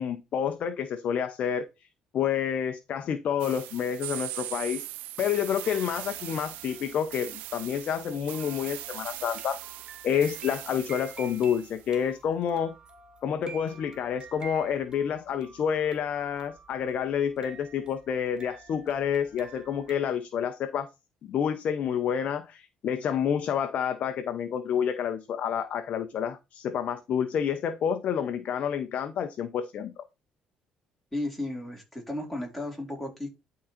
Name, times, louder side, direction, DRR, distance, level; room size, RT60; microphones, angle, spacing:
voice 1, 0.0-1.7 2.1-4.8 5.2-9.6 10.0-12.7 13.2-20.9 21.2-30.0, left 8 dB, 55° left, 0.9 m, -29 dB
sound 1, 3.4-11.9, right 17 dB, 90° right, 0.5 m, -40 dB
sound 2, 5.6-19.9, right 6 dB, 30° right, 2.6 m, -50 dB
voice 2, 31.1-33.3, left 1 dB, 5° left, 4.6 m, -34 dB
11.5 x 4.0 x 4.4 m
cardioid pair, 105°, 3 cm